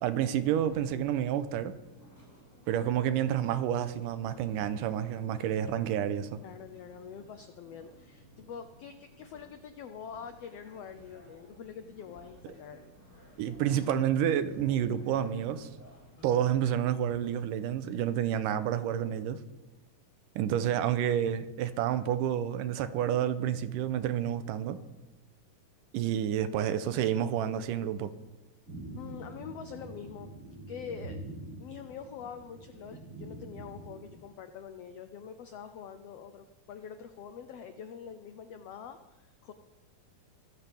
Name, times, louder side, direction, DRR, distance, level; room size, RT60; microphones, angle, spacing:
voice 1, 0.0-1.7 2.7-6.4 13.4-15.7 16.2-19.4 20.4-24.8 25.9-28.1, right 10 dB, 85° right, 2.4 m, -29 dB
sound 1, 0.7-16.4, equal, 20° left, 7.1 m, -56 dB
voice 2, 6.4-12.8 13.6-13.7 16.2-16.4 28.9-30.3 30.7-31.2 31.6-39.5, left 7 dB, 85° left, 1.4 m, -45 dB
sound 2, 28.7-34.1, right 1 dB, 40° right, 2.9 m, -45 dB
22.5 x 14.5 x 3.5 m
omnidirectional pair, 3.8 m